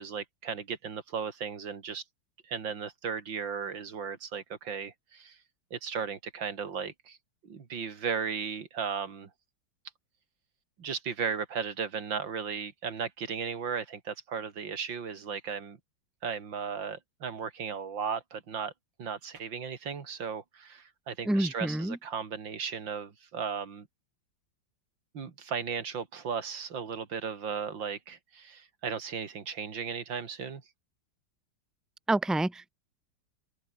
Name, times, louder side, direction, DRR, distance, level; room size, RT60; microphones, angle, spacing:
voice 1, 0.0-2.0 2.4-5.4 5.7-7.2 7.4-9.3 10.8-15.8 16.2-18.7 19.0-23.9 25.1-30.6, right 6 dB, 80° right, 3.0 m, -36 dB
voice 2, 21.3-22.0 32.1-32.7, right 1 dB, ahead, 1.8 m, -28 dB
open air
omnidirectional pair, 2.0 m